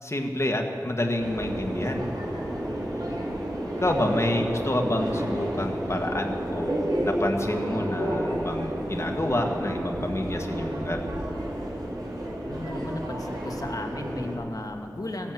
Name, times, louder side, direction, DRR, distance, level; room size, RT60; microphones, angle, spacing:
voice 1, 0.0-2.1 3.8-11.0, left 1 dB, 40° left, 2 dB, 1.6 m, -28 dB
Subway metro underground, 1.2-14.3, right 1 dB, 75° right, 3.0 m, -31 dB
voice 2, 12.4-15.3, left 1 dB, 60° left, 4 dB, 1.5 m, -35 dB
16.0 x 10.5 x 7.7 m, 2.9 s
wide cardioid pair, 45°, 7 cm